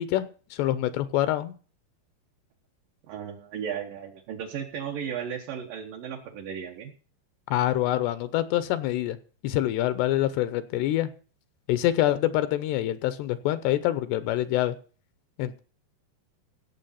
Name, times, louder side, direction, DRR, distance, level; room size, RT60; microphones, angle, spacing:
voice 1, 0.0-1.5 7.5-9.2 9.4-11.1 11.7-14.8 15.4-15.6, left 13 dB, 80° left, 12 dB, 2.8 m, -26 dB
voice 2, 3.1-6.9, right 8 dB, 65° right, 1 dB, 2.5 m, -35 dB
17.0 x 7.2 x 5.6 m, 0.40 s
omnidirectional pair, 5.0 m